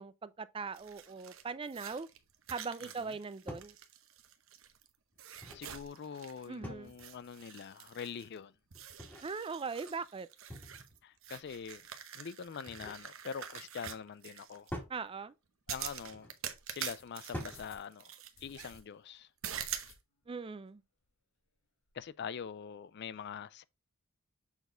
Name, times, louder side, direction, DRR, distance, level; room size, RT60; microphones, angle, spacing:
voice 1, 0.0-2.1 2.5-3.8 6.5-6.9 9.2-10.3 14.9-15.3 20.3-20.8, right 5 dB, 25° right, 0.4 m, -40 dB
sound 1, 0.7-4.9 5.2-6.5 6.9-8.4 8.7-14.7 15.7-18.8 19.4-20.0, right 9 dB, 65° right, 0.9 m, -46 dB
voice 2, 2.8-3.1 5.5-8.5 11.0-11.8 12.1-14.7 15.7-16.3 16.7-18.1 18.4-19.3 21.9-23.6, left 7 dB, 50° left, 0.4 m, -44 dB
sound 2, 3.5-3.8 5.1-5.7 6.6-7.1 8.7-9.3 10.5-11.0 12.4-13.1 14.7-15.0 16.1-16.4 17.3-17.7, equal, 10° left, 2.1 m, -45 dB
sound 3, 15.8-16.1 16.8-17.0 17.5-17.9 18.3-18.8 19.1-19.2 19.7-20.3 20.7-20.8 21.0-21.1 21.4-22.0, left 4 dB, 65° left, 2.0 m, -59 dB
7.1 x 4.2 x 3.7 m
head